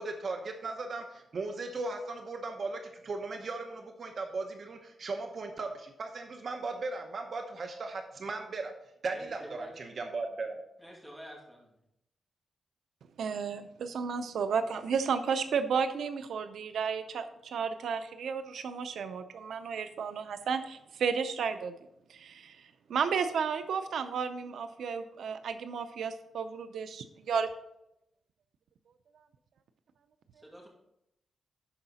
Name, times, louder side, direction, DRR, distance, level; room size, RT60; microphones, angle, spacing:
voice 1, 0.0-8.7 9.0-10.6, right 3 dB, 50° right, 4 dB, 0.8 m, -37 dB
voice 2, 9.1-9.7 10.8-11.7 30.4-30.7, equal, 5° right, -2 dB, 2.5 m, -48 dB
voice 3, 13.2-21.7 22.1-22.6 22.9-27.5, right 6 dB, 85° right, 10 dB, 0.5 m, -33 dB
11.5 x 4.8 x 4.1 m, 0.81 s
wide cardioid pair, 130°, 0 cm